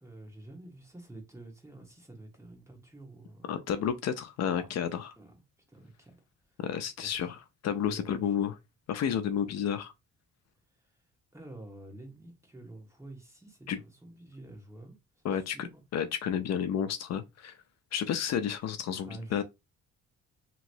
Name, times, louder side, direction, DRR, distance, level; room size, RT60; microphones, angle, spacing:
voice 1, 0.0-3.5 4.4-4.7 5.2-5.4 5.7-6.2 7.0-7.1 7.9-8.3 11.3-15.0 15.3-15.8 19.0-19.4, right 1 dB, 10° right, 1.2 m, -48 dB
voice 2, 3.5-5.1 6.6-8.6 8.9-9.9 13.7-13.8 15.2-17.6 17.9-19.4, left 8 dB, 60° left, 0.5 m, -31 dB
2.9 x 2.9 x 2.6 m
cardioid pair, 90°, 30 cm